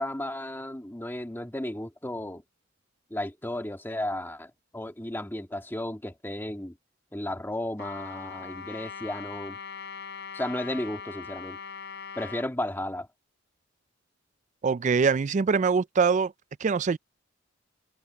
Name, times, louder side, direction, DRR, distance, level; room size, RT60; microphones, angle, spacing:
voice 1, 0.0-2.4 3.1-6.8 7.1-9.6 10.3-11.6 12.2-13.1, left 1 dB, 10° left, 1.8 m, -34 dB
Trumpet, 7.8-12.5, left 5 dB, 60° left, 7.3 m, -41 dB
voice 2, 14.6-16.3 16.6-17.0, right 5 dB, 40° right, 0.4 m, -23 dB
head